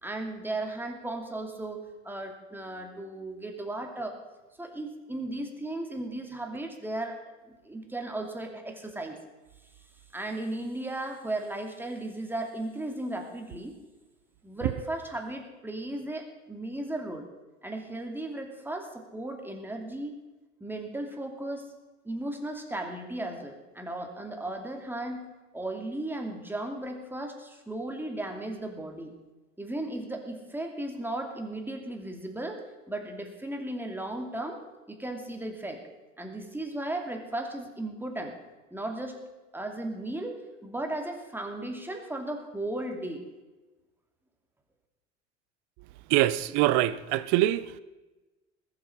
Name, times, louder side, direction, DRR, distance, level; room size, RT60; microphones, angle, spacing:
voice 1, 0.0-4.2 4.6-7.2 7.5-9.2 10.1-13.7 14.4-17.3 17.6-20.2 20.6-21.7 22.0-25.3 25.5-29.1 29.6-32.6 32.9-34.6 34.9-35.8 36.2-38.4 38.7-39.2 39.5-40.4 40.6-43.3, right 1 dB, 5° right, 2.7 m, -35 dB
voice 2, 46.1-47.7, right 15 dB, 50° right, 0.8 m, -24 dB
20.0 x 8.1 x 5.6 m
figure-of-eight pair, 75°, 38 cm